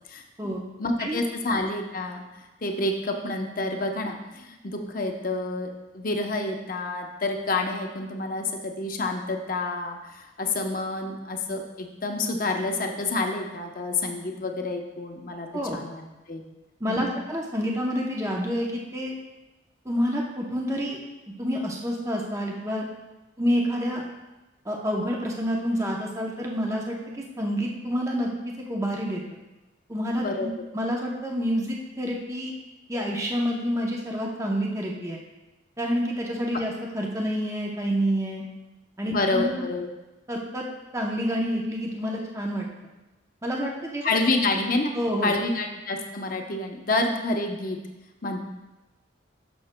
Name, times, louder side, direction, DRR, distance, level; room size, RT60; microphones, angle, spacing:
voice 1, 0.8-15.5 15.7-16.4 16.9-17.1 30.2-30.5 39.1-39.9 44.0-44.9 45.2-47.8 48.2-48.4, left 2 dB, 45° left, 3 dB, 0.8 m, -28 dB
voice 2, 15.5-15.8 16.8-19.1 19.8-21.0 21.4-22.9 23.4-24.0 24.6-29.2 29.9-32.5 32.9-35.2 35.8-38.4 39.0-39.6 40.3-40.7 40.9-42.7 43.4-44.1 44.9-45.3, equal, 15° right, -1 dB, 0.7 m, -28 dB
12.5 x 6.1 x 2.2 m, 1.1 s
head